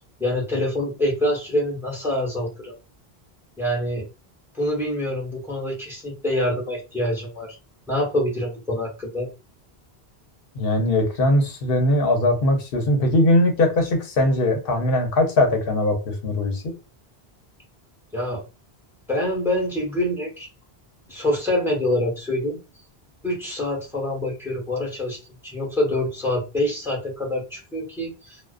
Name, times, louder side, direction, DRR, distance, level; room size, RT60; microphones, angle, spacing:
voice 1, 0.0-2.7 3.6-4.0 4.5-7.6 7.9-9.3 18.1-18.4 19.1-20.5 21.1-22.6 23.2-25.2 25.4-28.4, left 1 dB, 5° right, 0.9 m, -25 dB
voice 2, 10.5-16.7, left 1 dB, 65° left, 0.9 m, -20 dB
2.3 x 2.3 x 2.4 m
omnidirectional pair, 1.1 m